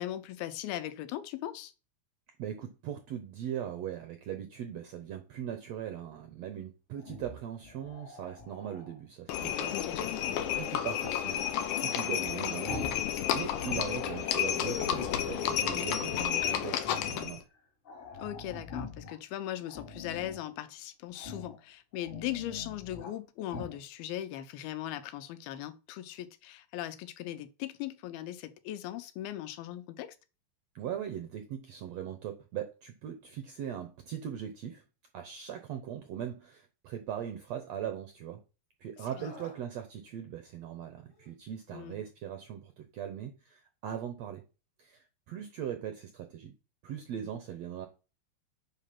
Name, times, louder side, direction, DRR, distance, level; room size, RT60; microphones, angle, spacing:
voice 1, 0.0-1.7 9.7-10.4 18.2-30.2 39.2-39.3 41.7-42.0, left 13 dB, 90° left, 2.7 m, -39 dB
voice 2, 2.4-9.7 10.0-10.1 10.5-11.4 11.7-12.9 13.3-17.4 30.7-34.8 35.1-38.4 38.8-44.4 44.8-46.5 46.8-47.9, right 9 dB, 75° right, 1.5 m, -40 dB
Growling, 7.0-9.0 11.3-13.1 13.4-14.3 14.9-15.8 16.2-17.2 17.5-17.6 17.8-19.2 19.6-20.4 21.1-21.6 21.9-23.1 23.5-23.8, left 3 dB, 35° left, 4.4 m, -44 dB
Livestock farm animals working animals, 9.3-17.4, left 10 dB, 70° left, 2.1 m, -31 dB
Screaming, 39.1-39.6 41.1-41.3, equal, 20° left, 1.7 m, -51 dB
9.8 x 4.2 x 5.9 m
omnidirectional pair, 4.2 m